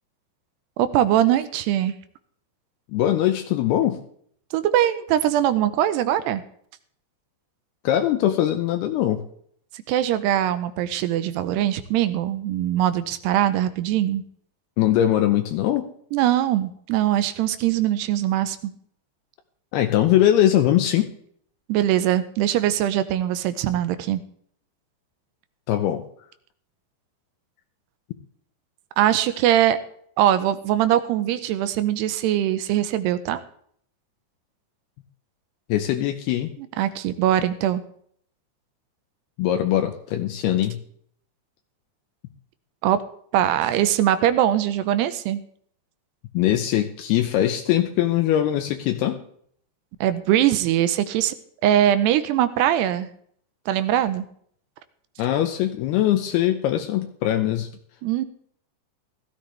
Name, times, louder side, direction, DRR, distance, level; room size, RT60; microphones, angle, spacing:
voice 1, 0.8-1.9 4.5-6.4 9.7-14.2 16.1-18.7 21.7-24.2 29.0-29.8 30.2-33.4 36.6-37.8 42.8-43.0 43.3-45.4 50.0-51.3 51.6-53.1 53.7-54.3 58.0-58.3, right 12 dB, 85° right, 11 dB, 2.8 m, -21 dB
voice 2, 2.9-4.0 7.8-9.2 14.8-15.9 19.7-21.1 25.7-26.0 35.7-36.5 39.4-40.8 46.3-49.2 55.2-57.7, left 12 dB, 80° left, 5 dB, 2.6 m, -21 dB
16.5 x 13.0 x 3.3 m, 0.62 s
omnidirectional pair, 4.9 m